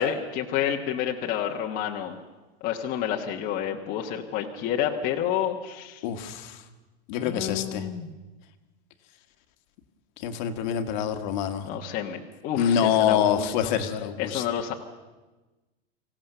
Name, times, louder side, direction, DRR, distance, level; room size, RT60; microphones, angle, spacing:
voice 1, 0.0-2.2 2.6-6.0 7.1-8.1 11.6-13.7 14.2-14.7, left 9 dB, 25° left, 0 dB, 1.3 m, -29 dB
voice 2, 6.0-6.6 7.1-7.9 10.2-11.7 12.6-14.4, left 9 dB, 45° left, 8 dB, 1.6 m, -26 dB
24.5 x 16.5 x 6.8 m, 1.2 s
supercardioid pair, 165°, 33 cm